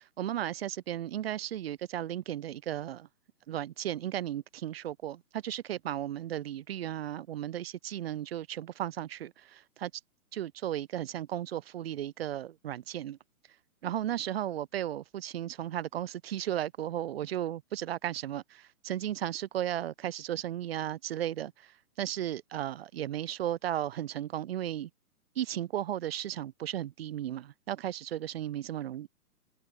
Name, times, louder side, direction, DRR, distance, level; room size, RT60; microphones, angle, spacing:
voice 1, 0.2-3.1 3.5-9.9 10.3-13.2 13.8-24.9 25.4-29.1, right 11 dB, 40° right, 7.8 m, -35 dB
hypercardioid pair, 165°, 45 cm